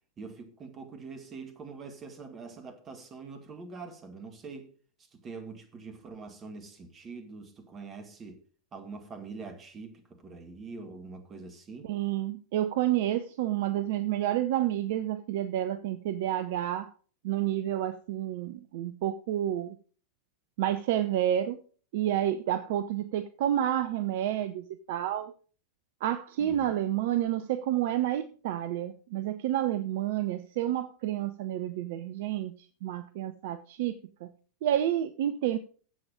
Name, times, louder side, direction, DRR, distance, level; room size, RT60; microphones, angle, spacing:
voice 1, 0.2-4.7 5.1-8.4 8.7-11.9 26.4-26.7, right 4 dB, 25° right, 2.1 m, -44 dB
voice 2, 11.8-16.9 17.2-19.8 20.6-21.6 21.9-25.3 26.0-32.6 32.8-33.9 34.2-34.3 34.6-35.6, right 12 dB, 50° right, 0.6 m, -29 dB
11.0 x 7.9 x 5.0 m
figure-of-eight pair, 90°, 0 cm